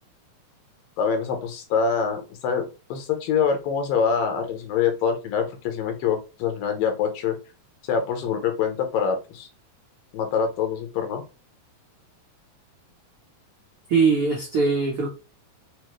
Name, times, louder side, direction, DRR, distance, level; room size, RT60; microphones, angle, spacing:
voice 1, 1.0-7.4 7.9-9.5 10.1-11.2, left 6 dB, 80° left, 5 dB, 2.7 m, -25 dB
voice 2, 13.9-15.1, right 4 dB, 85° right, -2 dB, 1.2 m, -21 dB
6.1 x 2.7 x 3.0 m, 0.30 s
omnidirectional pair, 4.0 m